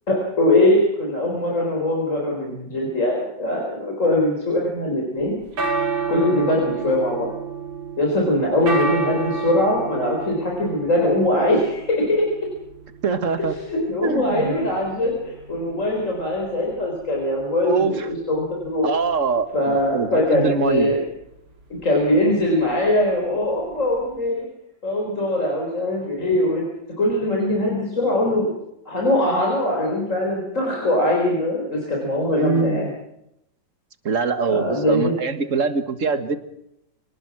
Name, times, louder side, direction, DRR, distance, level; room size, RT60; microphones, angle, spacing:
voice 1, 0.1-5.3 6.1-7.3 8.0-12.3 13.6-18.9 19.5-21.0 21.8-24.5 24.8-26.7 27.0-28.5 28.8-32.8 34.5-35.1, left 1 dB, 40° left, -1 dB, 4.7 m, -21 dB
sound 1, 5.2-24.3, right 4 dB, 85° right, 3.6 m, -32 dB
voice 2, 13.0-13.5 14.0-14.6 17.6-18.1 18.8-20.9 32.4-32.9 34.0-36.4, right 4 dB, 45° right, 10 dB, 1.9 m, -23 dB
26.0 x 19.5 x 6.1 m, 0.81 s
omnidirectional pair, 2.0 m